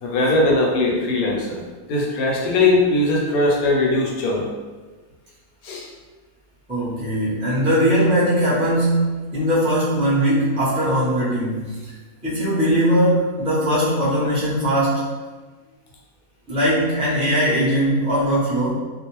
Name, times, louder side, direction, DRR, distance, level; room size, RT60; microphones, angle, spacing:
voice 1, 0.0-1.6 1.9-4.5 5.6-5.8, left 2 dB, 80° left, -2 dB, 1.1 m, -20 dB
voice 2, 6.7-11.9 12.2-15.1 16.5-18.7, equal, 5° right, -9 dB, 0.5 m, -20 dB
2.5 x 2.1 x 2.9 m, 1.3 s
omnidirectional pair, 1.6 m